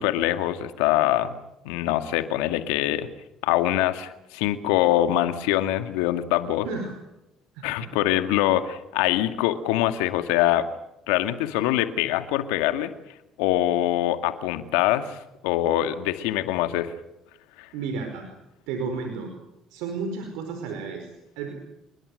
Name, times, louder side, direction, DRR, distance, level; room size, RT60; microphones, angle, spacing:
voice 1, 0.0-1.4 1.6-3.1 3.4-6.7 7.6-10.7 11.1-12.9 13.4-16.9 17.6-17.7, left 13 dB, 80° left, 9 dB, 2.1 m, -24 dB
voice 2, 6.6-6.9 7.5-7.9 17.7-18.3 18.7-19.3 19.7-21.5, right 4 dB, 75° right, 5 dB, 4.8 m, -32 dB
30.0 x 21.0 x 6.6 m, 0.88 s
hypercardioid pair, 60°, 0 cm